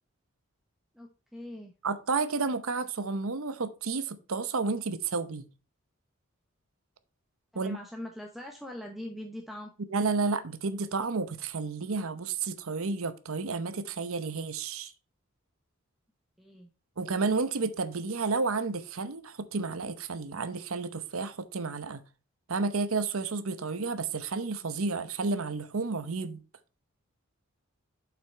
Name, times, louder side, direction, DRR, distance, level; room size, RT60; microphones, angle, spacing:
voice 1, 0.9-1.7 7.5-9.7 16.4-16.7, left 1 dB, ahead, 0.8 m, -42 dB
voice 2, 1.8-5.5 7.5-7.8 9.9-14.9 17.0-22.0 22.5-26.4, right 4 dB, 85° right, 0.8 m, -31 dB
7.5 x 5.9 x 4.4 m
head